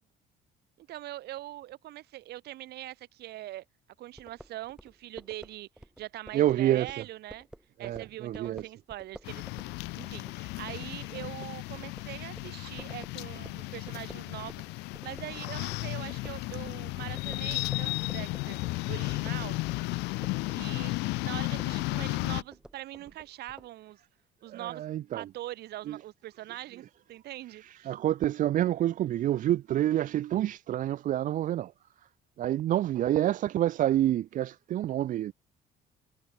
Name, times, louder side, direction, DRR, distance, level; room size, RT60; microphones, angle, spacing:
voice 1, 0.8-3.6 4.0-5.7 6.0-7.5 7.8-9.4 9.9-14.6 15.0-18.6 18.9-19.6 20.5-24.0 24.4-24.8 25.1-26.8 27.1-27.9, right 15 dB, 75° right, 4.3 m, -42 dB
sound 1, 4.2-14.7 14.9-23.7, right 1 dB, 5° right, 7.6 m, -51 dB
voice 2, 6.3-7.0 7.8-8.6 24.5-25.3 25.9-26.0 27.6-31.7 32.4-35.3, right 12 dB, 50° right, 0.4 m, -28 dB
sound 2, 9.2-22.4, left 23 dB, 90° left, 0.4 m, -34 dB
cardioid pair, 110°, 17 cm